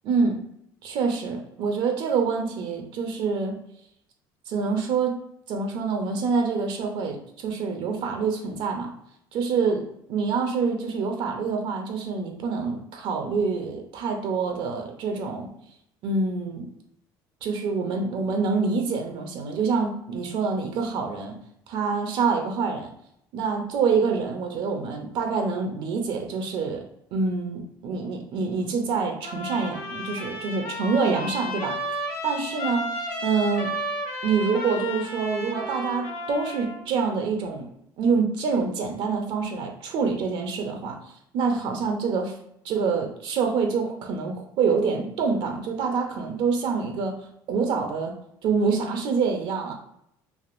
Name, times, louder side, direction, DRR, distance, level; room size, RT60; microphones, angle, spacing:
voice 1, 0.0-0.4 0.8-3.6 4.5-5.2 5.5-9.0 9.3-15.5 16.0-16.7 17.4-21.3 21.7-22.9 23.3-26.8 27.1-31.8 32.2-33.7 34.2-37.7 38.0-41.0 41.3-42.4 42.6-47.2 47.5-48.1 48.4-49.7, right 5 dB, 65° right, 4 dB, 0.5 m, -26 dB
Trumpet, 29.2-36.8, equal, 85° left, 1.0 m, -33 dB
3.4 x 2.4 x 2.4 m, 0.74 s
cardioid pair, 110°, 9 cm